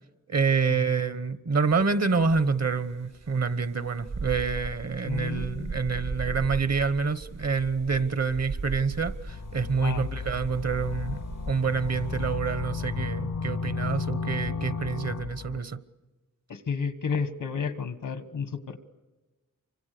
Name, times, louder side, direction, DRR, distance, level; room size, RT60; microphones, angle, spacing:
voice 1, 0.3-15.8, right 5 dB, 55° right, 14 dB, 1.2 m, -27 dB
sound 1, 1.7-1.8 2.2-12.3, right 3 dB, 75° right, 5.6 m, -38 dB
voice 2, 5.0-6.5 9.8-10.1 16.5-18.8, left 5 dB, 85° left, 12 dB, 1.6 m, -32 dB
sound 2, 9.3-15.6, left 5 dB, 70° left, 0.8 m, -33 dB
28.0 x 25.0 x 6.8 m, 1.2 s
wide cardioid pair, 85°, 31 cm